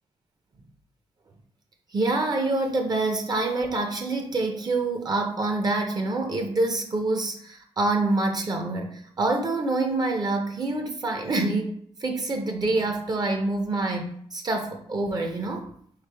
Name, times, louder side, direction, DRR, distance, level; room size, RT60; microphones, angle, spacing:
voice 1, 1.9-11.7 12.0-15.7, right 2 dB, 35° right, 3 dB, 0.6 m, -26 dB
4.2 x 3.2 x 3.3 m, 0.65 s
wide cardioid pair, 130°, 11 cm